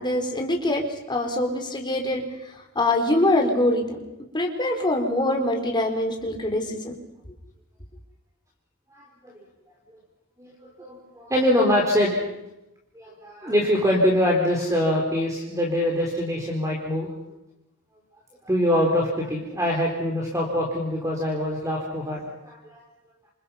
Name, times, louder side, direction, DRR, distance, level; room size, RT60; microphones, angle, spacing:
voice 1, 0.0-2.2 2.8-4.0 4.3-6.9, left 1 dB, 20° left, 3 dB, 4.0 m, -24 dB
voice 2, 8.9-9.3 10.4-12.2 12.9-17.1 18.4-22.8, equal, 15° right, -1 dB, 4.1 m, -24 dB
27.5 x 27.5 x 5.7 m, 0.91 s
head